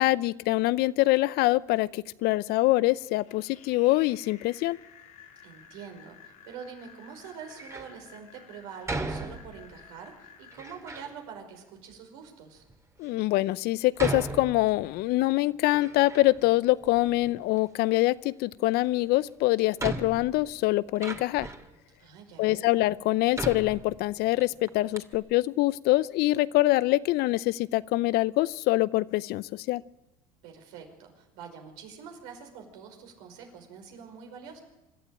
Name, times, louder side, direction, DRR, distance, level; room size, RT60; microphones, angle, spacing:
voice 1, 0.0-4.8 13.0-21.5 22.4-29.8, left 18 dB, 60° left, 19 dB, 0.7 m, -25 dB
sound 1, 3.0-10.7, left 7 dB, 85° left, 3.2 m, -53 dB
voice 2, 5.4-12.6 22.0-22.9 30.4-34.6, right 6 dB, 75° right, 3 dB, 5.2 m, -45 dB
Door, 7.5-8.0 8.9-9.8 10.5-11.1 11.9-12.0 12.7-12.8 14.0-15.1 15.5-16.5 16.8-17.7 19.0-19.1 19.8-21.7 22.4-22.5 23.3-24.4 24.7-24.8 24.9-25.2, right 2 dB, 15° right, 2.5 m, -37 dB
25.5 x 12.5 x 9.0 m, 0.98 s
hypercardioid pair, 80°, 18 cm